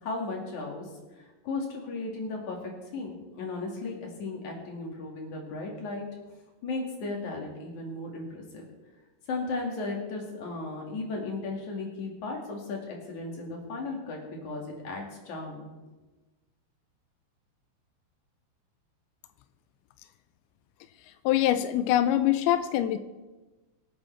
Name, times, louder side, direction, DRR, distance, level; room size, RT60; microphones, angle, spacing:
voice 1, 0.0-0.9 1.2-6.1 6.6-8.6 9.3-15.7, left 3 dB, 50° left, 0 dB, 3.4 m, -35 dB
voice 2, 21.3-23.0, left 12 dB, 90° left, 11 dB, 2.2 m, -24 dB
25.0 x 8.8 x 3.5 m, 1.2 s
omnidirectional pair, 5.1 m